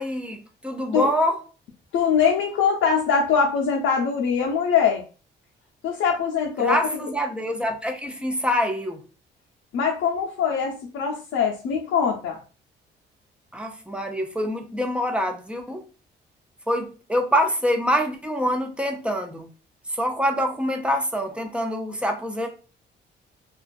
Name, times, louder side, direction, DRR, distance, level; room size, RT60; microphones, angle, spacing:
voice 1, 0.0-1.4 6.6-9.0 13.5-15.8 16.7-19.5 19.9-22.5, equal, 5° right, 0.5 m, -25 dB
voice 2, 1.9-5.0 5.8-7.1 9.7-12.4, left 6 dB, 80° left, 0.5 m, -22 dB
2.4 x 2.2 x 2.4 m
cardioid pair, 90°, 20 cm